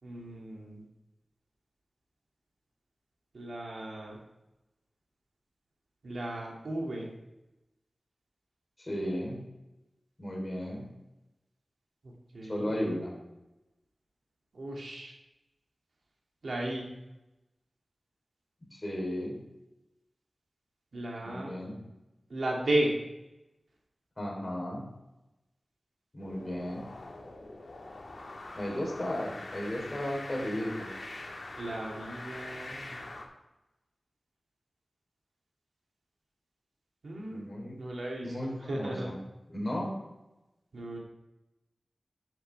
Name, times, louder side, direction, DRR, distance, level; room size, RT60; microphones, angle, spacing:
voice 1, 0.0-0.8 3.3-4.2 6.0-7.1 12.0-12.7 14.5-15.1 16.4-16.9 20.9-21.5 22.3-22.9 31.6-33.0 37.0-37.4 37.8-39.1 40.7-41.0, right 1 dB, 80° right, -2 dB, 2.5 m, -35 dB
voice 2, 8.8-9.4 10.2-10.9 12.5-13.1 18.7-19.4 21.2-21.8 24.2-24.8 26.1-26.9 28.5-30.9 37.3-37.8 38.2-39.2 39.5-39.9, equal, 30° left, -2 dB, 3.7 m, -34 dB
sound 1, 26.2-33.3, left 2 dB, 65° left, 1.7 m, -43 dB
11.0 x 7.8 x 3.4 m, 0.97 s
wide cardioid pair, 60°, 0 cm